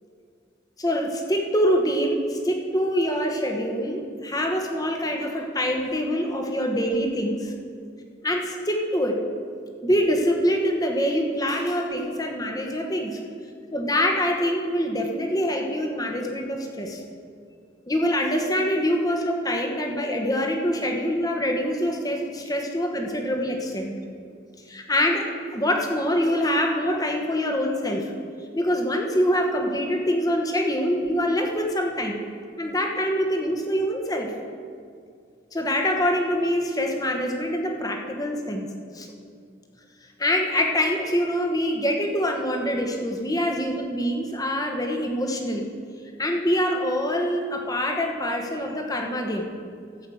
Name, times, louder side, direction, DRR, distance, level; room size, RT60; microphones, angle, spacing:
voice 1, 0.8-7.5 8.2-9.2 9.8-13.2 13.7-17.0 17.9-23.9 24.7-25.3 25.5-28.1 28.5-32.2 32.6-34.3 35.5-38.7 38.9-39.1 40.2-45.6 46.2-49.5, equal, 20° left, 2 dB, 1.1 m, -25 dB
14.0 x 5.4 x 7.6 m, 2.2 s
head